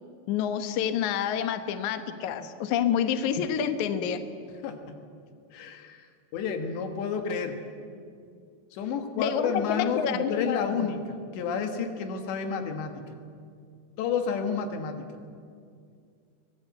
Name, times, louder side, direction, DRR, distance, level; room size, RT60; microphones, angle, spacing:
voice 1, 0.3-4.2 9.2-10.8, left 8 dB, 70° left, 8 dB, 1.9 m, -28 dB
voice 2, 4.6-5.0 5.5-7.6 8.7-13.2 14.0-15.2, left 6 dB, 85° left, 6 dB, 3.9 m, -31 dB
24.5 x 18.5 x 8.1 m, 2.3 s
omnidirectional pair, 4.9 m